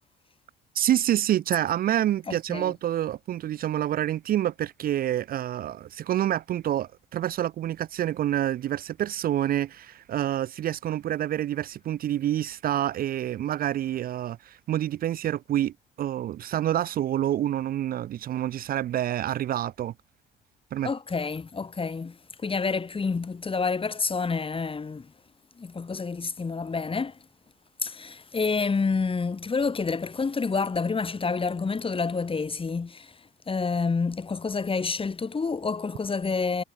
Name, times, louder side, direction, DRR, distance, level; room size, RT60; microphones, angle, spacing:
voice 1, 0.7-19.9 20.7-20.9, right 12 dB, 55° right, 0.6 m, -27 dB
voice 2, 20.8-22.2 22.4-25.1 25.6-27.1 27.8-33.1 33.5-36.6, left 4 dB, 30° left, 4.4 m, -28 dB
supercardioid pair, 65°, 18 cm